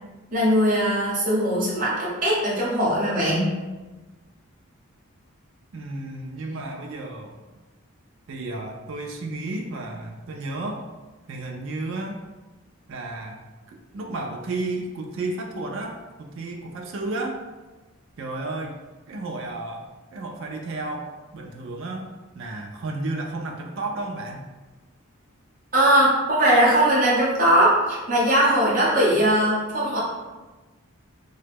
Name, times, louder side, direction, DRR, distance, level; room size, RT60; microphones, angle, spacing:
voice 1, 0.3-3.5 25.7-30.0, right 1 dB, 40° right, -6 dB, 0.9 m, -20 dB
voice 2, 5.7-7.4 8.3-10.9 11.3-12.2 12.9-13.4 13.7-17.4 18.2-18.8 19.1-24.5, right 2 dB, 60° right, 1 dB, 0.3 m, -32 dB
2.8 x 2.2 x 3.4 m, 1.2 s
head